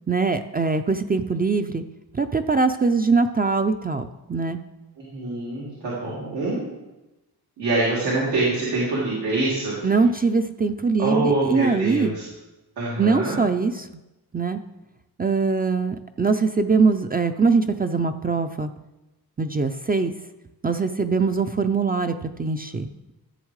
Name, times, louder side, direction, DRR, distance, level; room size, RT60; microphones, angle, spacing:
voice 1, 0.1-1.8 2.1-4.6 9.8-12.1 13.0-13.9 14.3-14.6 15.2-18.7 19.4-20.1 20.6-22.9, right 4 dB, 25° right, 7 dB, 0.5 m, -22 dB
voice 2, 5.0-6.6 7.6-9.7 11.0-12.2 12.8-13.4, right 2 dB, 90° right, -7 dB, 2.9 m, -25 dB
14.0 x 7.2 x 3.2 m, 1.0 s
cardioid pair, 75°, 40 cm